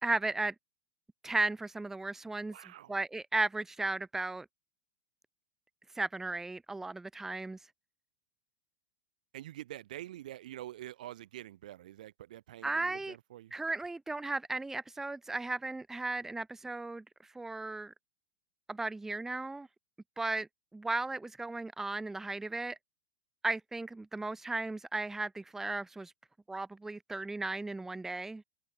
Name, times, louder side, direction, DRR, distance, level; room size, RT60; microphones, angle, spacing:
voice 1, 0.0-0.5 1.2-2.6 2.9-4.5 6.0-7.6 12.6-13.2 13.5-17.0 17.4-17.9 18.7-19.7 20.2-20.5 20.7-22.8 23.4-26.1 26.5-28.4, right 2 dB, 10° right, 1.7 m, -35 dB
voice 2, 2.2-3.0 9.3-13.5, right 13 dB, 65° right, 4.5 m, -46 dB
figure-of-eight pair, 95°, 5 cm